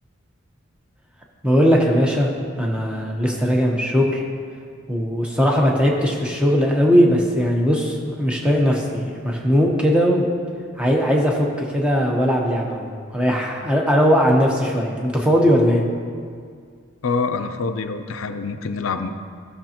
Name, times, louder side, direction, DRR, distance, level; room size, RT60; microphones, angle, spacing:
voice 1, 1.4-2.3 2.6-4.2 4.9-10.3 10.8-15.8, equal, 5° right, -1 dB, 0.9 m, -19 dB
voice 2, 17.0-19.1, left 4 dB, 75° left, 8 dB, 0.5 m, -25 dB
14.5 x 6.7 x 2.9 m, 2.1 s
head